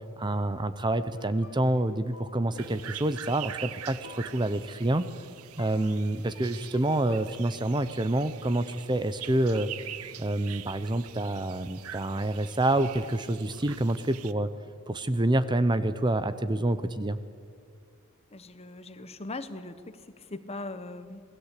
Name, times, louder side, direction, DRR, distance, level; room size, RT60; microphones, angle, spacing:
voice 1, 0.2-5.1 5.6-9.7 10.2-14.5 14.9-17.2, right 1 dB, 20° right, 12 dB, 0.7 m, -27 dB
sound 1, 1.2-7.3, left 3 dB, 85° left, 2.0 m, -52 dB
sound 2, 2.6-14.3, right 11 dB, 80° right, 0.7 m, -44 dB
voice 2, 18.3-21.2, left 2 dB, 30° left, 11 dB, 1.1 m, -40 dB
27.0 x 19.0 x 8.4 m, 2.1 s
head